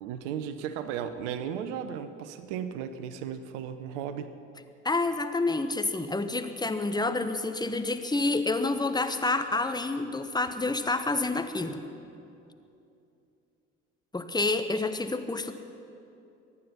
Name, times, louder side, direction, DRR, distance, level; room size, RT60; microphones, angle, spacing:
voice 1, 0.0-4.3, right 8 dB, 70° right, 11 dB, 0.9 m, -35 dB
voice 2, 4.8-11.8 14.1-15.5, left 3 dB, 10° left, 9 dB, 1.1 m, -28 dB
23.0 x 9.6 x 5.7 m, 2.7 s
figure-of-eight pair, 50°, 37 cm